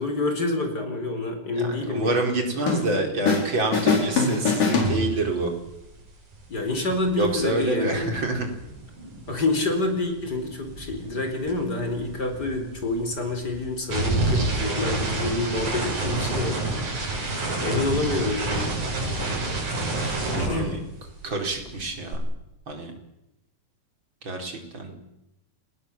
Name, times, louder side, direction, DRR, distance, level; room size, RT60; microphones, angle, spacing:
voice 1, 0.0-2.2 6.5-8.1 9.3-16.6 17.6-18.7 20.0-20.8 24.9-25.0, left 2 dB, 30° left, 6 dB, 4.7 m, -27 dB
voice 2, 1.5-5.5 7.2-8.5 20.3-20.8 21.2-22.2 22.7-22.9 24.2-24.9, right 2 dB, 35° right, 3 dB, 5.1 m, -27 dB
sound 1, 2.7-3.5 3.7-5.5, left 4 dB, 85° left, 6.2 m, -23 dB
sound 2, 4.8-5.1 5.3-9.7 10.0-21.3 21.5-22.2, right 2 dB, 65° right, 7.9 m, -29 dB
29.5 x 20.5 x 7.4 m, 0.87 s
omnidirectional pair, 3.7 m